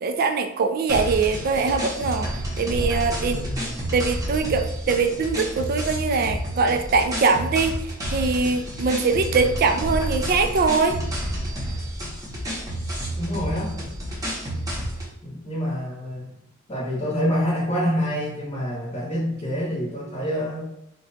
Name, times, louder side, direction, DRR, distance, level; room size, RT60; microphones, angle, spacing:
voice 1, 0.0-2.3 2.6-3.4 3.9-11.0, right 4 dB, 45° right, 7 dB, 0.3 m, -22 dB
sound 1, 0.9-15.1, equal, 15° right, 0.8 m, -30 dB
voice 2, 3.2-3.7 13.2-13.8 15.2-16.3 16.7-20.6, equal, 30° left, -5 dB, 0.8 m, -27 dB
2.9 x 2.2 x 4.0 m, 0.82 s
head